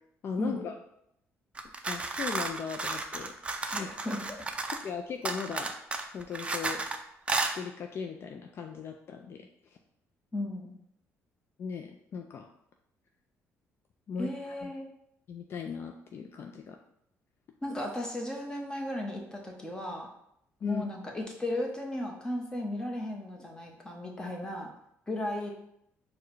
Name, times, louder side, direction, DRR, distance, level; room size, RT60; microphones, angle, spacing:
voice 1, 0.2-0.7 1.9-3.3 3.8-3.9 4.8-5.7 6.1-6.9 7.5-9.5 11.6-12.5 14.1-14.7 15.3-16.8 20.6-20.8, left 6 dB, 50° left, 4 dB, 0.4 m, -38 dB
sound 1, 1.6-4.9 5.3-7.0 7.3-7.6, right 3 dB, 20° right, 0.4 m, -33 dB
voice 2, 3.7-4.5 10.3-10.8 14.2-14.9 17.6-20.1 20.6-24.7 25.1-25.5, left 1 dB, 15° left, 0 dB, 0.9 m, -35 dB
4.6 x 2.2 x 4.6 m, 0.75 s
cardioid pair, 100°, 5 cm